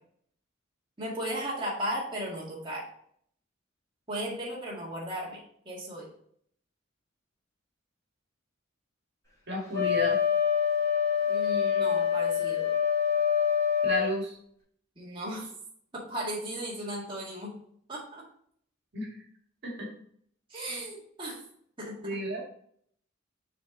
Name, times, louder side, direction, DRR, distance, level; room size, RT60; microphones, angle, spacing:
voice 1, 1.0-2.8 4.1-6.1 11.3-12.7 15.0-15.5 15.9-17.5 17.9-18.2 20.5-21.4 21.8-22.0, right 1 dB, 25° right, -5 dB, 1.9 m, -36 dB
voice 2, 9.5-10.2 13.8-14.3 18.9-19.1 19.6-19.9 22.0-22.4, equal, 60° right, -2 dB, 2.0 m, -32 dB
Wind instrument woodwind instrument, 9.7-14.2, left 8 dB, 15° left, 2.9 m, -26 dB
6.7 x 4.3 x 3.9 m, 0.64 s
head